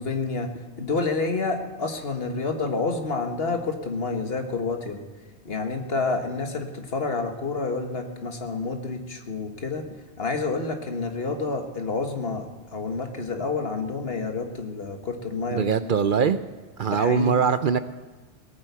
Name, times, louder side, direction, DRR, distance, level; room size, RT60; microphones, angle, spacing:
voice 1, 0.0-5.0 5.5-9.9 10.2-12.5 12.7-15.7 16.2-16.3 16.9-17.4, left 3 dB, 65° left, 5 dB, 1.7 m, -29 dB
voice 2, 15.5-16.4 16.8-17.8, right 6 dB, 55° right, 12 dB, 0.7 m, -22 dB
18.5 x 9.3 x 6.9 m, 1.3 s
omnidirectional pair, 1.1 m